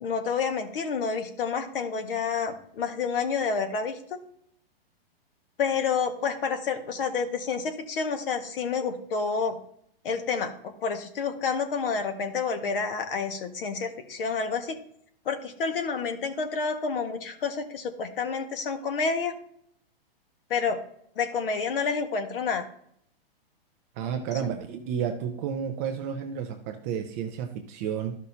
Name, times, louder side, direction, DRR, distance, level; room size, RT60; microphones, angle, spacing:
voice 1, 0.0-4.0 5.6-9.6 10.0-14.8 15.2-19.3 20.5-20.8 21.1-22.6 24.4-24.5, left 5 dB, 65° left, 6 dB, 1.6 m, -29 dB
voice 2, 24.0-28.2, right 8 dB, 15° right, 5 dB, 0.3 m, -31 dB
13.0 x 5.5 x 2.7 m, 0.67 s
hypercardioid pair, 145°, 30 cm